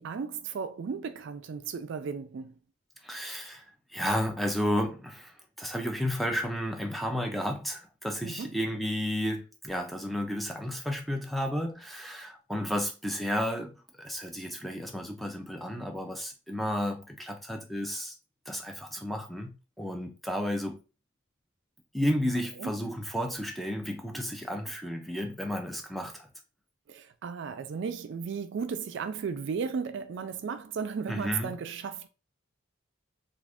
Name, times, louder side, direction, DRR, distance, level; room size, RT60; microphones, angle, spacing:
voice 1, 0.0-2.5 8.2-8.5 22.6-22.7 26.9-32.1, right 6 dB, 60° right, 0.3 m, -35 dB
voice 2, 3.0-18.1 18.5-20.8 21.9-26.3 31.1-31.5, equal, ahead, 0.5 m, -32 dB
2.4 x 2.4 x 3.4 m
head